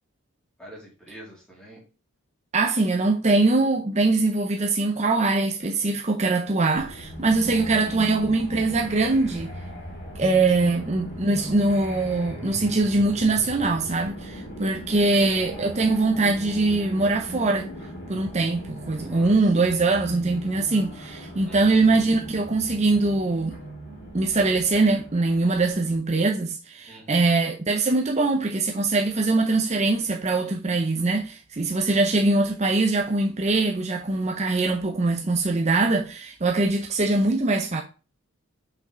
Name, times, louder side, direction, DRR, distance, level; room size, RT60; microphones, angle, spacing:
voice 1, 0.6-1.8 7.5-8.0 10.2-10.3 10.5-10.7 14.9-15.3 19.0-19.3 21.5-21.8 26.9-27.3, equal, 5° left, 2.6 m, -46 dB
voice 2, 2.5-9.5 10.2-17.7 18.1-23.6 24.1-37.8, right 3 dB, 30° right, 0.6 m, -22 dB
sound 1, 6.8-26.0, equal, 50° left, 2.8 m, -38 dB
5.8 x 5.5 x 3.8 m
head